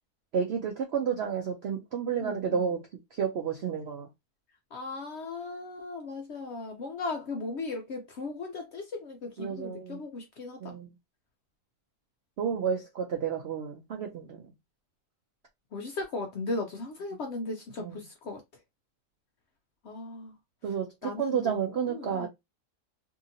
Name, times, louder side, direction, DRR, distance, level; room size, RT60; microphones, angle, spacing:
voice 1, 0.3-2.8 3.1-4.1 9.4-10.0 10.6-10.9 12.4-14.5 17.8-18.0 20.6-22.3, right 7 dB, 70° right, 0.6 m, -31 dB
voice 2, 2.2-2.6 4.7-10.7 15.7-18.6 19.8-20.3 20.7-20.8 21.0-22.3, left 3 dB, 65° left, 0.7 m, -37 dB
2.8 x 2.7 x 2.5 m
omnidirectional pair, 1.6 m